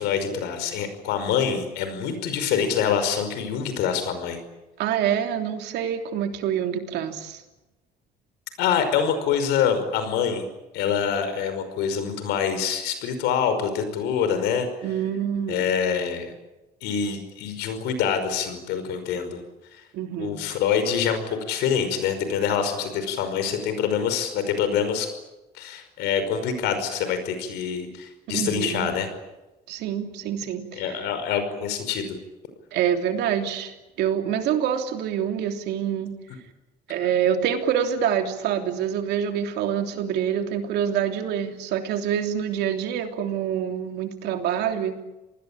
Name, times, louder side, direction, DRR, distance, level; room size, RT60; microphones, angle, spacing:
voice 1, 0.0-4.4 8.6-10.4 10.7-14.7 15.5-16.3 16.8-19.4 20.2-25.1 25.5-29.1 30.7-32.2, left 7 dB, 90° left, 9 dB, 5.4 m, -25 dB
voice 2, 4.8-7.4 14.8-15.6 19.9-20.4 28.3-28.9 29.7-31.0 32.7-36.1 36.9-45.0, right 9 dB, 80° right, 5 dB, 3.2 m, -26 dB
28.0 x 20.0 x 8.8 m, 1.0 s
cardioid pair, 110°, 17 cm